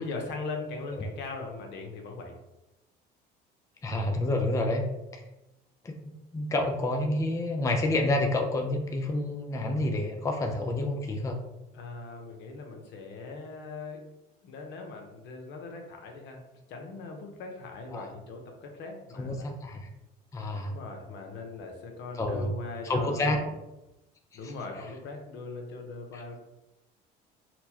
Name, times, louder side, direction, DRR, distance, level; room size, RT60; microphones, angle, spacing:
voice 1, 0.0-2.4 11.7-14.0 14.4-16.4 16.7-19.5 20.5-23.5 24.3-26.4, left 3 dB, 65° left, 2 dB, 0.8 m, -40 dB
voice 2, 3.8-4.9 5.1-5.2 5.8-11.4 17.9-18.0 19.2-19.9 20.3-20.7 22.1-22.5 22.8-23.4 24.4-24.5 26.1-26.2, left 2 dB, 15° left, 3 dB, 0.4 m, -29 dB
4.2 x 2.2 x 2.8 m, 0.97 s
supercardioid pair, 90°, 20 cm